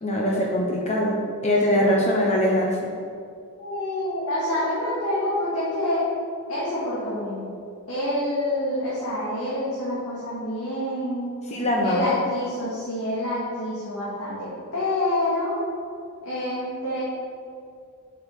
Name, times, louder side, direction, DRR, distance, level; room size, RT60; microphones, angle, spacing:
voice 1, 0.0-1.2 1.4-2.9 11.5-12.1, left 1 dB, 30° left, -2 dB, 1.0 m, -22 dB
voice 2, 1.7-2.3 3.6-6.0 6.5-7.4 7.9-11.3 11.8-15.6 16.2-17.0, left 1 dB, 75° left, -9 dB, 2.2 m, -27 dB
7.7 x 6.2 x 5.6 m, 2.3 s
head